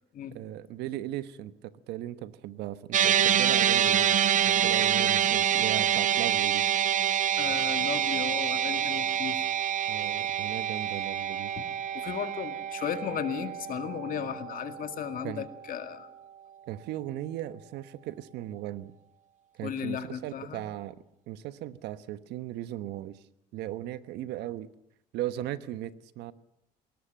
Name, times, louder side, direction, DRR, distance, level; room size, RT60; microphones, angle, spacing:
voice 1, 0.3-6.6 9.9-11.5 15.2-15.5 16.7-18.9 19.5-21.0 21.3-23.2 23.5-24.7 25.1-26.3, right 13 dB, 85° right, 14 dB, 1.2 m, -37 dB
sound 1, 2.9-15.4, right 9 dB, 50° right, 0.8 m, -27 dB
voice 2, 7.4-9.5 11.6-11.7 11.9-16.1 19.6-20.6, left 8 dB, 55° left, 9 dB, 2.1 m, -35 dB
21.0 x 18.5 x 9.0 m, 0.77 s
cardioid pair, 110°, 17 cm